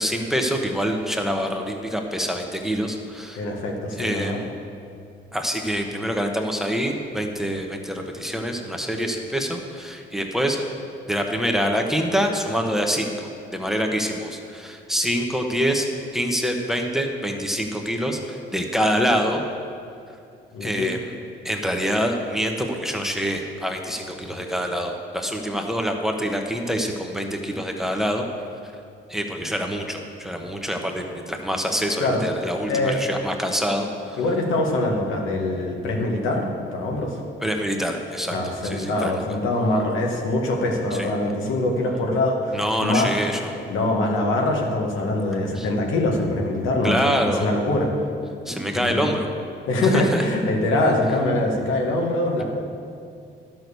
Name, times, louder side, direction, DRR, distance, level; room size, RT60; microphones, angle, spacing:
voice 1, 0.0-3.4 4.0-4.5 5.3-10.6 11.1-15.9 16.1-19.4 20.6-21.1 21.4-28.2 29.1-34.2 37.4-38.4 38.6-39.2 41.0-41.1 42.5-43.5 45.6-45.7 46.8-47.4 48.5-49.3 49.9-50.2, equal, ahead, 3 dB, 1.1 m, -25 dB
voice 2, 3.3-4.4 20.5-20.9 32.0-32.2 32.6-33.0 34.2-36.5 36.7-37.2 38.3-43.1 43.7-47.9 48.7-49.1 49.7-52.4, left 2 dB, 85° left, 0 dB, 1.7 m, -23 dB
11.0 x 6.2 x 6.9 m, 2.4 s
cardioid pair, 90°, 20 cm